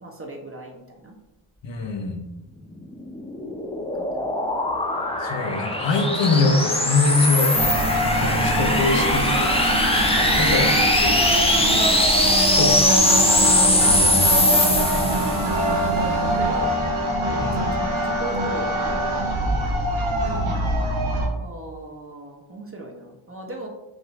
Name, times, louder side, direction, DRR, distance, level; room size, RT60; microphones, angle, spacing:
voice 1, 0.0-1.1 4.0-4.5 8.4-9.7 9.9-10.5 11.5-11.8 13.7-15.0 15.6-16.8 17.2-19.7 21.4-23.7, right 1 dB, 30° right, 1 dB, 0.8 m, -37 dB
voice 2, 1.6-2.2 5.2-7.9 8.1-9.5 10.0-10.7 11.0-11.2 11.5-11.9 12.6-13.0 13.8-14.2 17.4-17.7 20.2-20.6, left 3 dB, 65° left, 2 dB, 0.9 m, -24 dB
sound 1, 2.9-15.6, left 1 dB, 10° left, 0.7 m, -21 dB
sound 2, 7.5-21.3, right 1 dB, 85° right, 0.9 m, -23 dB
5.2 x 2.5 x 3.2 m, 0.97 s
wide cardioid pair, 85°, 47 cm